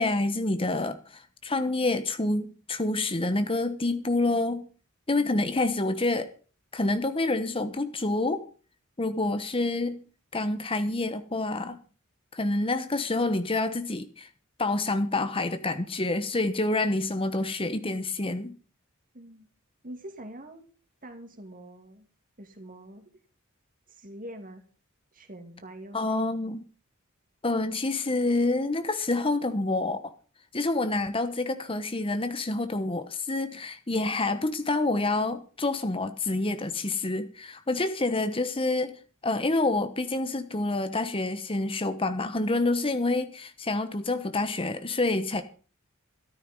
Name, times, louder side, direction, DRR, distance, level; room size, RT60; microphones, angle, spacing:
voice 1, 0.0-4.7 5.1-6.3 6.7-8.4 9.0-10.0 10.3-11.8 12.3-14.3 14.6-18.5 25.9-26.6 27.4-30.1 30.5-45.4, left 2 dB, 25° left, 1.1 m, -27 dB
voice 2, 5.2-5.6 19.1-19.5 19.8-20.6 21.0-22.1 22.4-23.1 23.9-24.6 25.1-26.0, right 1 dB, 40° right, 2.7 m, -44 dB
14.0 x 13.0 x 5.4 m
head